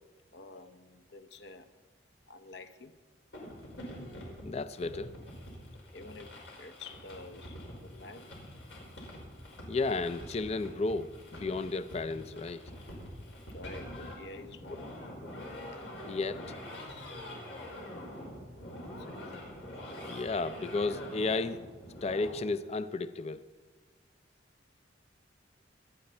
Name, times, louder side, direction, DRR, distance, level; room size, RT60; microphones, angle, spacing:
voice 1, 0.3-1.7 2.3-3.0 5.9-8.4 13.3-15.1 18.7-19.4, left 3 dB, 60° left, 0.8 m, -49 dB
sound 1, 3.3-22.3, left 1 dB, 85° left, 5.1 m, -45 dB
voice 2, 4.4-5.1 9.7-12.6 16.0-16.4 20.1-21.6 22.0-23.5, left 3 dB, 35° left, 0.4 m, -33 dB
25.5 x 9.5 x 4.4 m
head